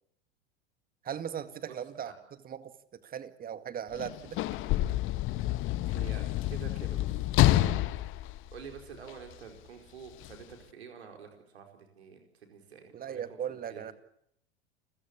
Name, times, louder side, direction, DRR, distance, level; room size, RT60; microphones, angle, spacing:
voice 1, 1.0-2.8 3.0-4.4 12.9-13.9, right 9 dB, 25° right, 12 dB, 2.1 m, -38 dB
voice 2, 1.7-2.2 5.8-7.3 7.6-7.9 8.5-13.2 13.7-13.8, right 6 dB, 70° right, 4 dB, 4.8 m, -48 dB
Sliding door / Slam, 3.9-9.3 10.2-10.4, left 15 dB, 40° left, 1.2 m, -28 dB
30.0 x 15.5 x 8.5 m, 0.73 s
figure-of-eight pair, 85°, 33 cm